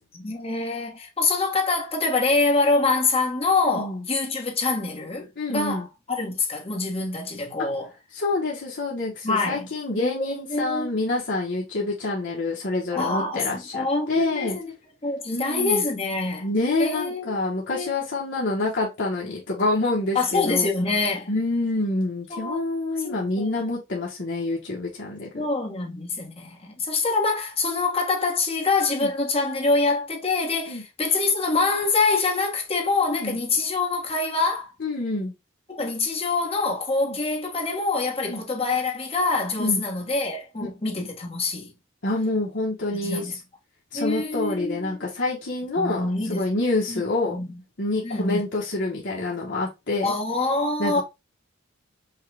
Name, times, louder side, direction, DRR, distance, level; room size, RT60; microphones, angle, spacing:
voice 1, 0.1-7.9 9.2-9.7 10.0-11.0 12.9-14.7 15.0-16.5 16.8-17.4 17.7-17.9 20.1-21.3 22.3-22.7 23.0-23.7 25.4-34.7 35.7-41.7 42.9-43.4 43.9-45.1 45.8-46.6 46.9-47.6 48.0-48.4 50.0-51.0, left 3 dB, 30° left, 1.1 m, -25 dB
voice 2, 3.7-4.1 5.4-5.9 7.6-7.7 8.1-14.6 15.3-15.8 16.4-20.7 21.3-25.4 29.0-29.1 30.7-30.8 33.1-33.4 34.8-35.3 37.1-37.2 38.3-38.4 39.6-39.8 42.0-43.3 43.9-47.4 47.8-50.1 50.8-51.0, left 2 dB, 60° left, 1.2 m, -27 dB
5.5 x 2.3 x 3.3 m
head